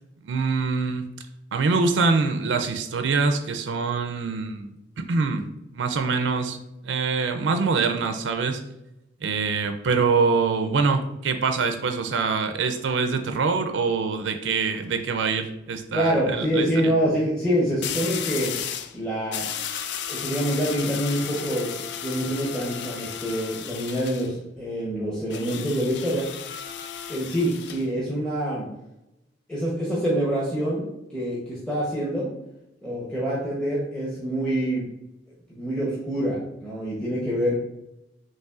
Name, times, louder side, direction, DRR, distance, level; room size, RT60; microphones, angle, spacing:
voice 1, 0.2-1.1 1.5-4.7 5.1-5.5 5.7-6.6 6.8-8.6 9.2-16.9, right 4 dB, 90° right, 7 dB, 0.4 m, -24 dB
sound 1, 14.7-15.0 17.8-19.0 19.3-24.3 25.3-27.9, left 8 dB, 65° left, 0.4 m, -34 dB
voice 2, 15.9-18.5 18.9-19.5 20.1-26.3 27.1-28.7 29.5-30.8 31.1-32.3 32.8-34.9 35.5-37.6, equal, 5° left, -7 dB, 0.8 m, -26 dB
5.5 x 2.9 x 2.4 m, 0.90 s
head